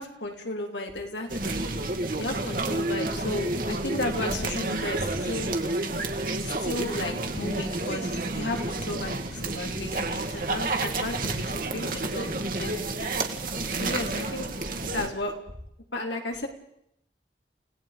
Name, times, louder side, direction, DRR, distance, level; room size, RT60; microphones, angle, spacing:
voice 1, 0.0-1.6 2.2-5.5 6.4-13.0 13.8-14.5 14.9-15.3 15.9-16.5, left 2 dB, 80° left, 2 dB, 3.6 m, -34 dB
sound 1, 1.3-15.1, right 2 dB, 50° right, 2.1 m, -30 dB
29.5 x 18.0 x 5.2 m, 0.75 s
head